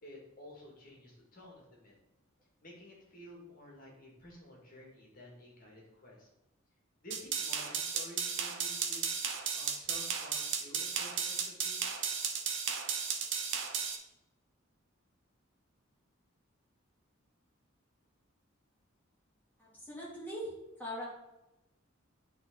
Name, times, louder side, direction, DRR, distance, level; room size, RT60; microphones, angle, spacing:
voice 1, 0.0-1.9 2.6-6.3 7.0-9.1 9.5-11.8, left 1 dB, 40° left, -2 dB, 2.1 m, -52 dB
sound 1, 7.1-14.0, right 6 dB, 60° right, 0.9 m, -34 dB
voice 2, 19.6-20.5 20.8-21.1, equal, 10° left, -7 dB, 2.8 m, -41 dB
9.6 x 4.1 x 4.0 m, 0.93 s
head